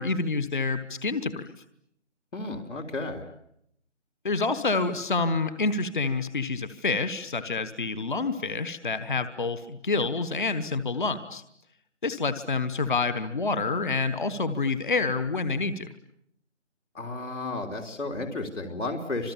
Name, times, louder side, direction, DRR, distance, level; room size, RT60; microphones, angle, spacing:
voice 1, 0.0-1.5 4.2-11.4 12.0-15.9, left 3 dB, 45° left, 11 dB, 1.2 m, -28 dB
voice 2, 2.3-3.3 16.9-19.3, left 2 dB, 80° left, 3 dB, 3.8 m, -33 dB
30.0 x 26.5 x 7.3 m, 0.75 s
figure-of-eight pair, 170°, 36 cm